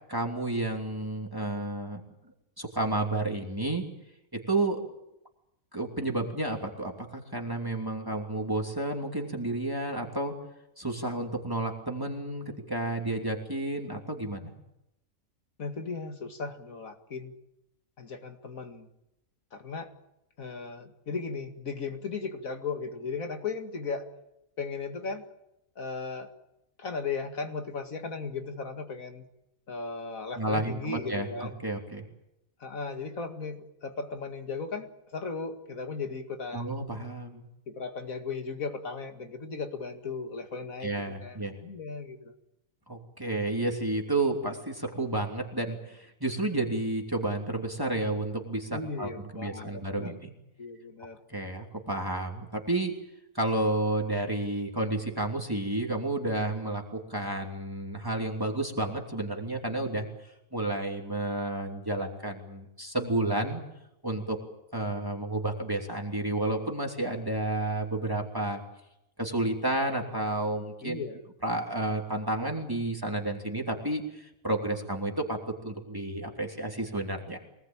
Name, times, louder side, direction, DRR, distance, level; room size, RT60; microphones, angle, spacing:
voice 1, 0.1-2.0 2.6-3.8 4.3-4.8 5.7-10.3 10.8-14.5 30.4-32.0 36.5-37.4 40.8-41.5 42.9-50.3 51.3-52.9 53.3-60.1 60.5-63.6 64.0-64.4 64.7-68.6 69.2-71.0 71.4-77.4, right 2 dB, 15° right, 2 dB, 3.0 m, -31 dB
voice 2, 15.6-17.3 18.0-18.9 19.5-19.9 20.4-24.1 24.6-25.2 25.8-26.3 26.8-29.2 29.7-31.6 32.6-36.7 37.7-42.3 48.7-50.2 50.6-51.2 70.8-71.2, left 4 dB, 70° left, 6 dB, 2.5 m, -36 dB
25.0 x 19.0 x 8.9 m, 0.86 s
omnidirectional pair, 1.5 m